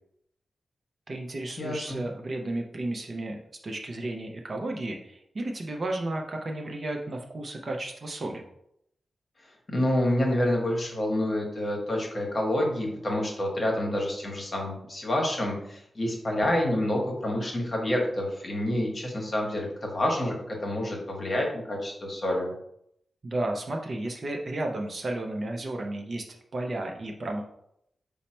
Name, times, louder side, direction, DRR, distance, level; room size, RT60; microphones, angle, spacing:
voice 1, 1.1-3.4 3.6-8.4 23.2-26.3 26.5-27.4, right 2 dB, 35° right, 2 dB, 0.5 m, -33 dB
voice 2, 1.6-2.0 9.7-22.5, left 1 dB, 30° left, 0 dB, 1.0 m, -28 dB
5.4 x 2.1 x 4.2 m, 0.75 s
wide cardioid pair, 165°, 0 cm